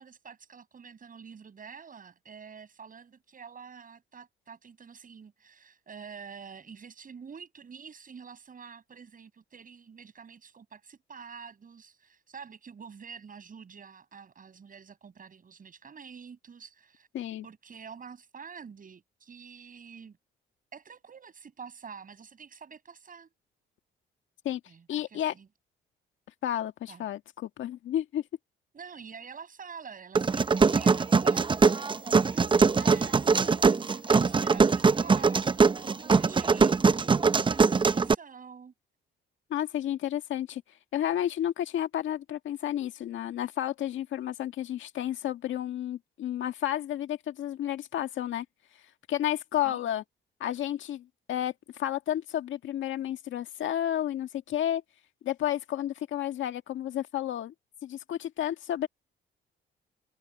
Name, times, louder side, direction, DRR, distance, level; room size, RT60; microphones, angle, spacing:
voice 1, 0.0-17.1 17.4-20.2 20.7-23.3 24.7-25.5 26.9-27.1 28.7-36.7 37.4-38.7 49.6-49.8, right 6 dB, 45° right, 7.7 m, -47 dB
voice 2, 17.1-17.5 24.5-24.6 24.9-25.3 26.4-28.2 39.5-40.6 40.9-48.5 49.1-50.0 50.4-51.5 51.8-54.8 55.2-57.5 57.8-58.9, left 11 dB, 75° left, 1.8 m, -31 dB
sound 1, 30.2-38.1, right 4 dB, 25° right, 0.6 m, -22 dB
cardioid pair, 90°, 20 cm